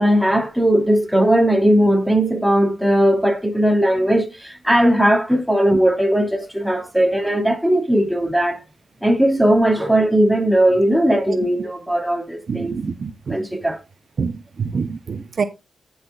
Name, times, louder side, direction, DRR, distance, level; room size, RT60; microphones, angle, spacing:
voice 1, 0.0-8.6 9.0-12.8 13.3-13.8, right 1 dB, ahead, 2.5 m, -18 dB
voice 2, 12.5-13.4 14.2-14.3 14.6-15.4, right 5 dB, 60° right, 0.7 m, -25 dB
16.0 x 5.8 x 2.3 m
supercardioid pair, 50°, 0 cm